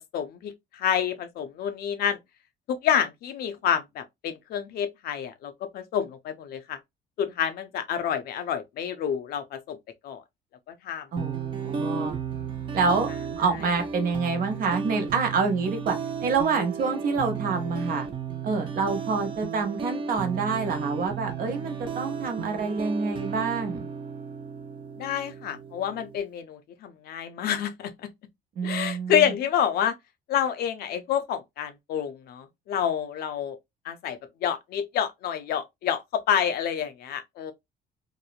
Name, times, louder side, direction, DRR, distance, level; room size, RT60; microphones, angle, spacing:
voice 1, 0.1-2.2 2.7-6.8 7.2-9.8 10.0-10.2 10.8-11.1 25.0-28.1 28.6-29.9 30.3-33.6 33.8-37.5, left 9 dB, 65° left, 0.5 m, -28 dB
voice 2, 11.1-12.2 12.7-13.1 13.4-18.1 18.4-23.9 28.6-29.3, right 4 dB, 55° right, 0.8 m, -27 dB
sound 1, 11.2-26.2, right 6 dB, 30° right, 0.5 m, -34 dB
3.0 x 2.0 x 2.3 m
cardioid pair, 110°, 17 cm